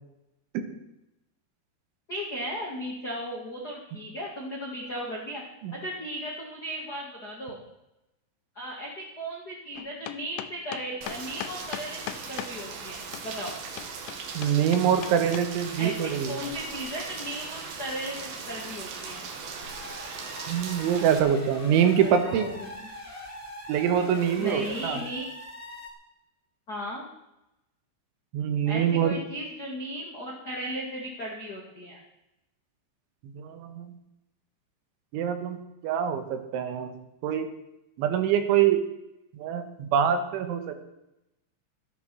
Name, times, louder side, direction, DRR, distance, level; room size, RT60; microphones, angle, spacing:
voice 1, 2.1-5.4 5.7-7.6 8.5-13.6 15.8-19.2 22.0-22.7 24.4-25.3 26.7-27.0 28.6-32.0, equal, 50° left, -2 dB, 1.1 m, -36 dB
sound 1, 9.8-12.5 13.1-15.5, left 14 dB, 80° left, 2.6 m, -38 dB
Rain, 11.0-21.2, right 5 dB, 60° right, 2.8 m, -39 dB
voice 2, 14.4-16.4 20.5-22.5 23.7-25.0 28.3-29.2 33.2-33.9 35.1-35.6 35.8-37.0 37.2-37.5 38.0-38.8 39.3-40.8, right 9 dB, 80° right, 7 dB, 3.7 m, -25 dB
sound 2, 19.5-25.9, equal, 5° left, 2.2 m, -42 dB
13.5 x 11.0 x 6.2 m, 0.90 s
omnidirectional pair, 5.5 m